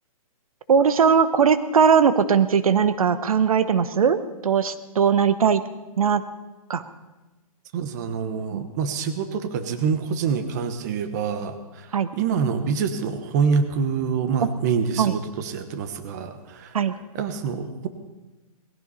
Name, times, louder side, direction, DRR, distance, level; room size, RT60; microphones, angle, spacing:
voice 1, 0.7-5.6 6.0-6.2 6.7-6.8 8.5-8.7 11.9-12.1 15.0-15.1 16.7-16.9, right 7 dB, 70° right, 12 dB, 1.0 m, -19 dB
voice 2, 7.7-16.8 17.1-17.9, right 6 dB, 30° right, 9 dB, 1.1 m, -26 dB
20.0 x 16.0 x 4.2 m, 1.1 s
hypercardioid pair, 160°, 19 cm